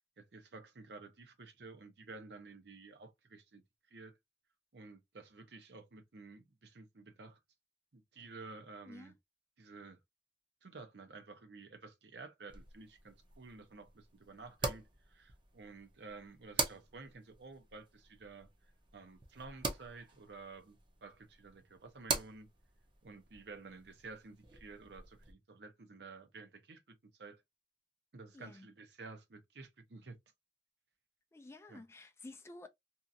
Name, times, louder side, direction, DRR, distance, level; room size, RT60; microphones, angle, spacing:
voice 1, 0.2-3.6 3.9-4.1 4.7-7.4 7.9-9.1 9.6-10.0 10.6-14.8 15.1-18.5 18.9-22.5 23.0-26.8 27.2-27.4 28.1-30.2 31.7-31.8, right 3 dB, 70° right, 0.7 m, -52 dB
sound 1, 12.5-25.3, right 3 dB, 30° right, 0.6 m, -44 dB
voice 2, 28.3-28.7 31.3-32.7, left 2 dB, 15° left, 0.3 m, -52 dB
2.7 x 2.4 x 2.5 m
head